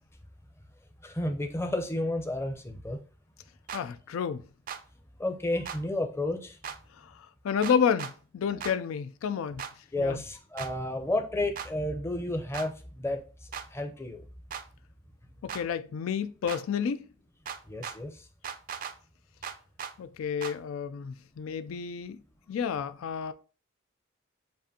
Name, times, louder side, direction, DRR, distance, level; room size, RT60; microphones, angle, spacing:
voice 1, 1.0-3.0 5.2-6.6 9.9-13.2 13.7-14.2 17.7-18.2, left 1 dB, 15° left, 0.6 m, -31 dB
voice 2, 3.7-4.4 7.4-9.6 10.0-10.2 15.4-17.1 20.0-22.2 22.5-23.3, left 7 dB, 85° left, 0.3 m, -30 dB
sound 1, 3.7-3.8 4.7-4.8 5.7-5.8 6.6-6.8 7.6-8.1 8.6-8.7 9.6-9.7 10.6-10.7 11.6-11.7 12.5-12.7 13.5-13.7 14.5-14.6 15.5-15.6 16.5-16.6 17.5-18.0 18.4-18.9 19.4-19.9 20.4-20.6, right 7 dB, 45° right, 0.4 m, -37 dB
7.4 x 2.5 x 2.7 m
head